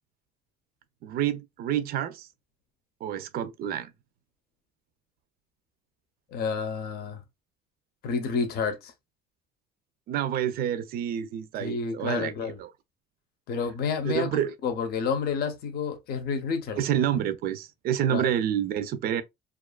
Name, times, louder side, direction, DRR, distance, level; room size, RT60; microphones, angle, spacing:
voice 1, 1.0-2.3 3.0-3.9 10.1-12.3 12.6-12.7 14.0-14.5 16.8-19.2, right 10 dB, 65° right, 0.4 m, -28 dB
voice 2, 6.3-7.2 8.0-8.9 11.6-12.6 13.5-16.8 18.1-18.3, left 5 dB, 65° left, 0.7 m, -30 dB
2.4 x 2.4 x 2.2 m
cardioid pair, 110°, 17 cm